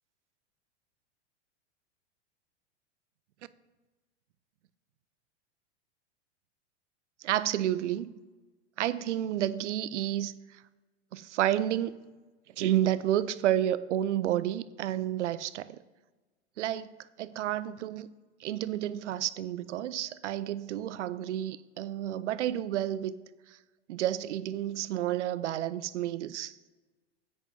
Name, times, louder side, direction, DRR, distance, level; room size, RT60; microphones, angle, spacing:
voice 1, 7.2-8.1 8.8-10.3 11.1-12.0 12.6-15.8 16.6-16.9 17.2-18.1 18.4-23.1 23.9-26.5, right 12 dB, 85° right, 0.5 m, -30 dB
10.0 x 8.8 x 2.7 m
hypercardioid pair, 110°, 35 cm